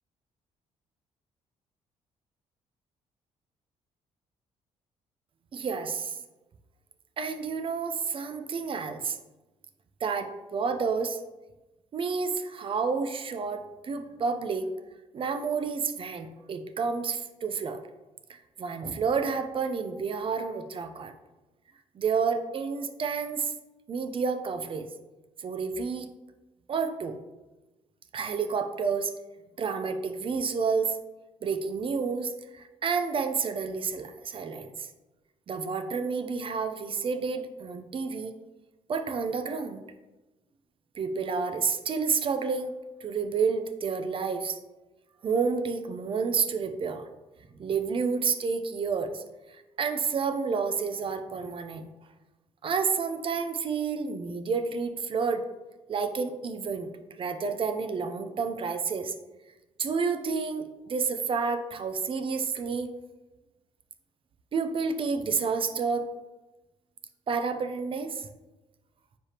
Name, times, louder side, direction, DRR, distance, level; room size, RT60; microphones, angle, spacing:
voice 1, 5.5-6.2 7.2-9.2 10.0-11.2 11.9-14.7 15.1-17.8 18.3-21.1 21.9-23.5 23.9-24.9 25.4-26.1 26.7-27.2 28.1-29.1 29.6-31.0 31.4-34.9 35.5-38.4 38.9-39.8 41.0-42.7 43.0-44.6 45.2-47.0 47.6-51.9 52.6-55.4 55.9-56.9 57.2-59.1 59.8-62.9 64.5-66.1 67.3-68.3, right 5 dB, 45° right, 8 dB, 0.6 m, -30 dB
9.5 x 3.5 x 2.9 m, 1.1 s
cardioid pair, 95°, 13 cm